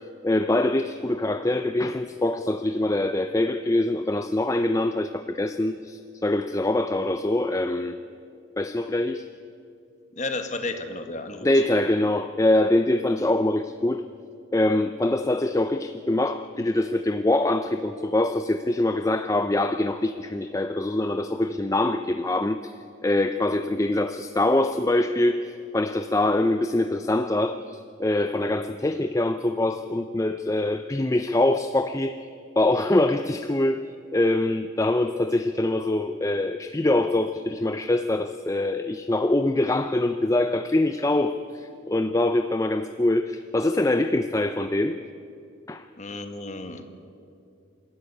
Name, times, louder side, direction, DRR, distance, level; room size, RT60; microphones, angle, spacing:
voice 1, 0.2-8.0 8.6-9.2 11.4-14.0 14.5-22.7 23.0-25.5 25.7-32.2 32.6-33.8 34.1-45.0 45.7-45.9, left 1 dB, 15° left, 9 dB, 0.5 m, -24 dB
voice 2, 10.1-11.5 46.0-46.8, left 2 dB, 35° left, 7 dB, 1.7 m, -32 dB
25.5 x 13.5 x 9.8 m, 2.5 s
head